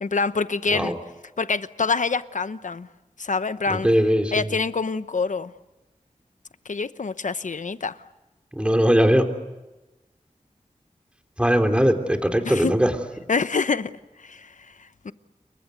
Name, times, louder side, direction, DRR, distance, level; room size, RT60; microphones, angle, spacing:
voice 1, 0.0-0.9 1.4-2.9 3.2-3.9 4.3-5.5 6.7-8.0 12.4-12.7 13.3-13.9 14.2-14.5 15.0-15.1, left 4 dB, 70° left, 1.0 m, -26 dB
voice 2, 3.7-4.5 8.5-9.2 11.4-12.9, equal, 10° right, 3.6 m, -20 dB
29.0 x 23.5 x 8.1 m
wide cardioid pair, 65°, 13 cm